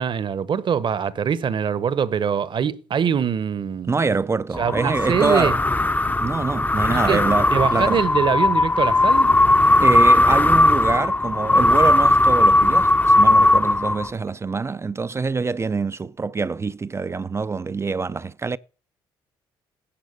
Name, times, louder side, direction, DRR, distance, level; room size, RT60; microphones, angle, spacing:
voice 1, 0.0-3.9 4.6-5.5 6.9-7.2 7.5-9.3, right 7 dB, 50° right, 1.0 m, -23 dB
voice 2, 3.9-5.6 6.2-8.0 9.8-18.6, right 4 dB, 25° right, 0.4 m, -25 dB
sound 1, 4.5-14.3, left 2 dB, 15° left, 0.7 m, -17 dB
10.0 x 6.2 x 6.6 m
supercardioid pair, 60°, 11 cm